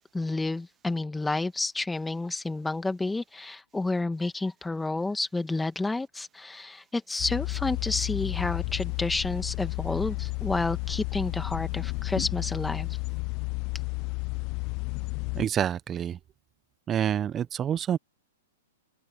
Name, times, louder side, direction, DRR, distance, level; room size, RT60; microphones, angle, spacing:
voice 1, 0.1-12.9, left 2 dB, 5° left, 2.0 m, -30 dB
sound 1, 7.2-15.5, left 30 dB, 40° left, 0.7 m, -32 dB
voice 2, 15.3-16.2 16.9-18.0, right 9 dB, 25° right, 1.0 m, -27 dB
open air
hypercardioid pair, 120°, 0 cm